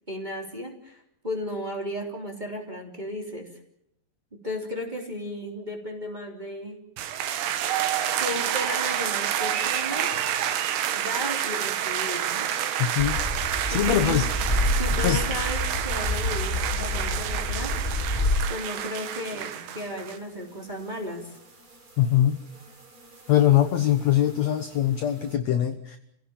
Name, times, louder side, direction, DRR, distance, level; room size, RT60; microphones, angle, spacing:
voice 1, 0.1-3.5 4.3-6.8 8.2-10.1 10.9-12.5 13.7-14.2 14.7-17.8 18.5-21.4, left 1 dB, 10° right, 1 dB, 2.9 m, -34 dB
sound 1, 7.0-20.2, right 10 dB, 75° right, 3.4 m, -28 dB
sound 2, 11.6-25.4, right 2 dB, 35° right, 4.1 m, -52 dB
voice 2, 12.8-13.2 13.7-14.3 15.0-15.2 22.0-22.4 23.3-26.0, left 11 dB, 70° left, 8 dB, 1.6 m, -22 dB
sound 3, 13.0-18.4, left 1 dB, 10° left, 6.7 m, -28 dB
29.0 x 17.0 x 7.2 m, 0.77 s
omnidirectional pair, 4.9 m